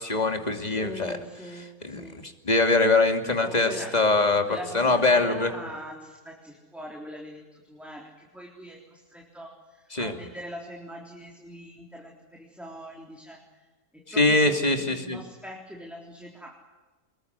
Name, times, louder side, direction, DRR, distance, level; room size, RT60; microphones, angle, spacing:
voice 1, 0.0-1.2 1.8-4.4 4.7-5.5 9.9-10.1 14.1-15.2, left 3 dB, 25° left, 5 dB, 2.8 m, -23 dB
voice 2, 0.6-2.2 3.4-4.0 4.4-13.7 13.9-16.6, equal, ahead, -1 dB, 3.6 m, -42 dB
26.0 x 21.5 x 9.5 m, 1.3 s
omnidirectional pair, 1.6 m